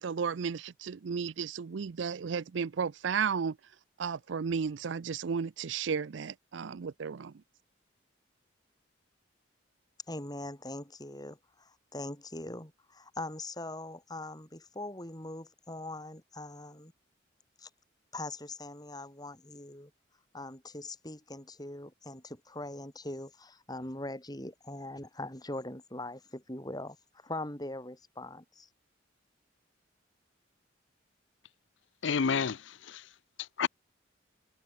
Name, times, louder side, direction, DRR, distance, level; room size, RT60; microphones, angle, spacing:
voice 1, 0.0-3.6 4.0-7.3, right 6 dB, 65° right, 0.5 m, -33 dB
voice 2, 10.1-11.4 11.9-16.9 17.6-17.7 18.1-19.9 20.3-27.0 27.2-28.7, left 2 dB, 20° left, 4.1 m, -41 dB
voice 3, 32.0-33.7, left 6 dB, 70° left, 0.6 m, -31 dB
head